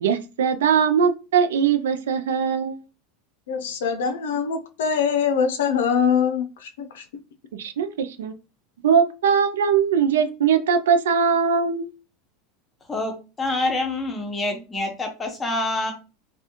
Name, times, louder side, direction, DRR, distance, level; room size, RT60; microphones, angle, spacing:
voice 1, 0.0-2.8 7.5-8.3 8.8-11.9, right 7 dB, 90° right, 0.4 m, -21 dB
voice 2, 3.5-7.0, left 6 dB, 85° left, 0.5 m, -23 dB
voice 3, 12.9-15.9, left 2 dB, 20° left, 0.9 m, -26 dB
2.4 x 2.3 x 2.8 m
supercardioid pair, 110°, 0 cm